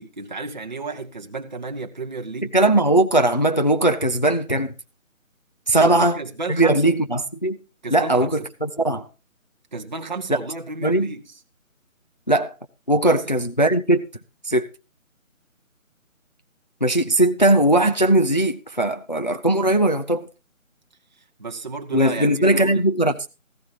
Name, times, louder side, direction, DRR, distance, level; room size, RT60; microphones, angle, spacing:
voice 1, 0.0-2.6 5.8-7.0 7.8-8.5 9.7-11.4 13.0-13.4 21.2-22.9, right 3 dB, 35° right, 0.8 m, -33 dB
voice 2, 2.5-4.7 5.7-6.2 6.5-7.6 7.9-9.1 10.8-11.1 12.3-12.5 12.9-14.0 14.5-14.7 16.8-20.3 21.9-23.1, right 1 dB, 35° left, 0.5 m, -19 dB
14.5 x 13.0 x 2.9 m
figure-of-eight pair, 170°, 41 cm